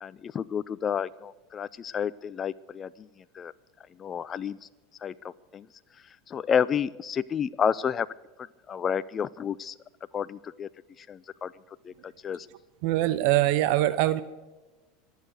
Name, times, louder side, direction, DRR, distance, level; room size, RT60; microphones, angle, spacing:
voice 1, 0.0-2.9 3.4-3.5 4.0-4.6 5.0-5.6 6.3-8.1 8.7-9.7 10.1-10.7 11.1-11.5 11.9-12.5, left 7 dB, 30° left, 16 dB, 0.4 m, -30 dB
voice 2, 12.8-14.2, right 15 dB, 60° right, 15 dB, 0.7 m, -23 dB
24.0 x 8.3 x 6.5 m, 1.2 s
hypercardioid pair, 90°, 0 cm